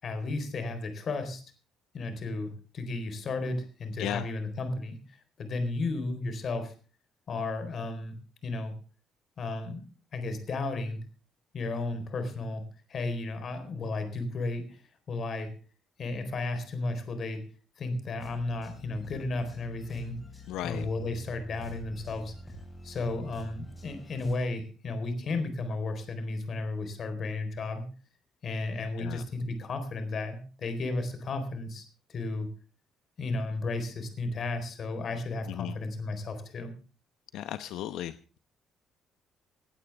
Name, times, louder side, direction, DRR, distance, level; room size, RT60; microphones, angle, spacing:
voice 1, 0.0-1.4 1.9-6.7 7.3-8.2 8.4-8.7 9.4-9.8 10.1-11.0 11.5-12.6 12.9-15.5 16.0-17.4 17.8-20.2 20.6-22.3 22.8-27.9 28.4-32.5 33.2-36.7, left 2 dB, 35° left, 9 dB, 4.2 m, -34 dB
sound 1, 18.2-24.3, equal, 10° left, 7.8 m, -47 dB
voice 2, 20.5-20.9 29.0-29.2 35.5-35.7 37.3-38.4, left 12 dB, 75° left, 11 dB, 0.9 m, -36 dB
18.0 x 16.5 x 3.5 m, 0.37 s
cardioid pair, 165°, 0 cm